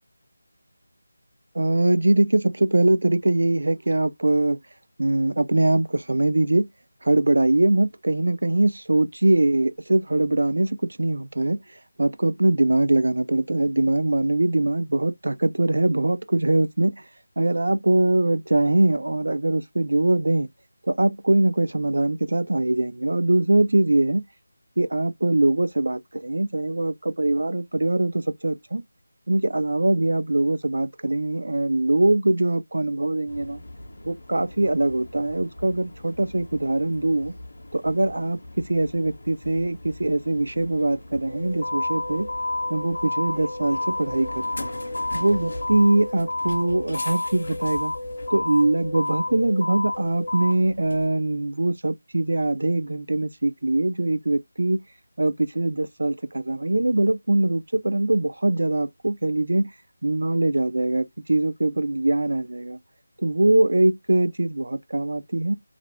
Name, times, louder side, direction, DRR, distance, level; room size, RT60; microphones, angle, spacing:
voice 1, 1.5-4.6 5.0-6.7 7.0-11.6 12.0-17.0 17.4-20.5 20.9-24.2 24.8-28.8 29.3-33.6 34.0-37.3 37.7-42.3 42.7-44.7 45.1-47.9 48.3-54.8 55.2-59.7 60.0-62.8 63.2-65.6, right 2 dB, 85° right, 0.3 m, -22 dB
sound 1, 33.3-51.1, left 2 dB, 50° left, 0.6 m, -32 dB
2.4 x 2.2 x 3.2 m
figure-of-eight pair, 180°, 0 cm